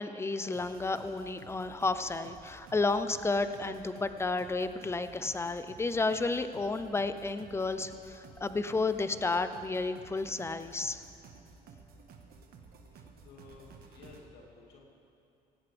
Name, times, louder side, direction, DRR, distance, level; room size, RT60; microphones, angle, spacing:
voice 1, 0.0-11.0, left 3 dB, 15° left, 11 dB, 0.6 m, -32 dB
sound 1, 0.5-14.2, right 4 dB, 65° right, 1.5 m, -54 dB
voice 2, 13.2-14.9, left 3 dB, 75° left, -2 dB, 2.3 m, -54 dB
17.0 x 16.0 x 3.5 m, 2.5 s
cardioid pair, 110°, 17 cm